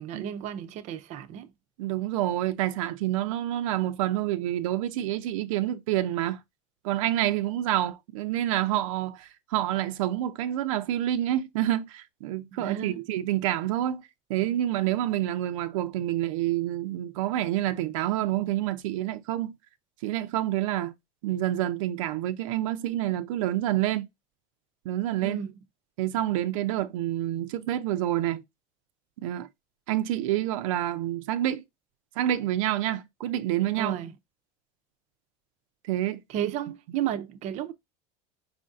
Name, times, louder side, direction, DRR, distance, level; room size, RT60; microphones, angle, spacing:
voice 1, 0.0-1.5 12.5-13.0 25.2-25.5 33.8-34.1 36.3-37.7, right 10 dB, 45° right, 0.6 m, -33 dB
voice 2, 1.8-6.4 6.8-14.0 14.3-19.6 20.0-20.9 21.2-24.1 24.8-25.4 26.0-28.4 29.2-29.5 29.9-31.6 32.2-34.0 35.9-36.5, right 13 dB, 90° right, 0.6 m, -28 dB
4.9 x 2.6 x 3.6 m
supercardioid pair, 140°, 16 cm